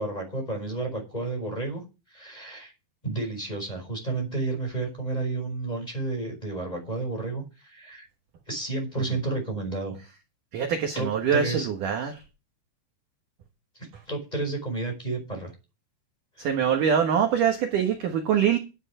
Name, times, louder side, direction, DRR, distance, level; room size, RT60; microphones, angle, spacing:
voice 1, 0.0-1.8 2.1-2.7 3.0-8.1 8.5-10.0 10.9-11.7 14.1-15.5 16.4-16.5, right 3 dB, 10° left, 1 dB, 4.5 m, -31 dB
voice 2, 10.5-12.2 16.4-18.6, right 8 dB, 60° right, 4 dB, 2.3 m, -24 dB
12.5 x 8.0 x 4.9 m, 0.28 s
omnidirectional pair, 5.4 m